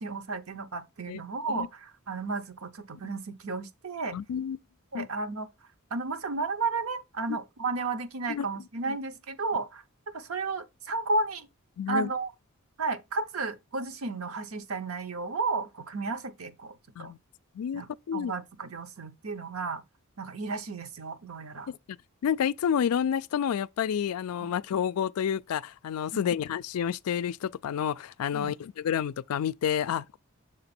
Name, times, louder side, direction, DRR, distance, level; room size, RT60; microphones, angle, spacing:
voice 1, 0.0-4.2 4.9-5.5 5.9-9.8 10.1-11.5 11.9-12.3 12.8-17.1 17.7-19.8 20.2-21.7 24.4-24.5 26.1-26.2 28.3-28.5, right 3 dB, 70° right, 0.8 m, -33 dB
voice 2, 4.1-4.6 4.9-5.1 8.3-8.5 8.9-9.0 11.8-12.1 17.0-17.2 17.6-18.3 21.7-21.8 22.2-30.2, left 8 dB, 85° left, 0.3 m, -29 dB
6.5 x 3.9 x 4.3 m
head